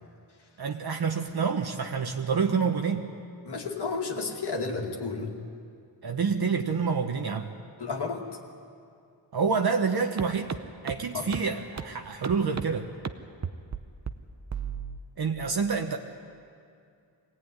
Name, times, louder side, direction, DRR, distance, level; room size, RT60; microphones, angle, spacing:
voice 1, 0.6-3.1 6.0-7.5 9.3-10.5 10.8-12.9 15.2-16.0, right 5 dB, 55° right, 4 dB, 1.1 m, -27 dB
voice 2, 3.4-5.3 7.8-8.2 11.1-11.3, left 4 dB, 60° left, 0 dB, 2.4 m, -32 dB
sound 1, 10.2-10.3 10.5-10.6 10.9-11.0 11.3-11.4 11.8-11.9 12.2-12.6 13.0-13.1 13.4-13.8 14.1-14.2 14.5-15.0, right 6 dB, 35° right, 0.8 m, -32 dB
24.0 x 17.5 x 9.7 m, 2.4 s
wide cardioid pair, 155°, 45 cm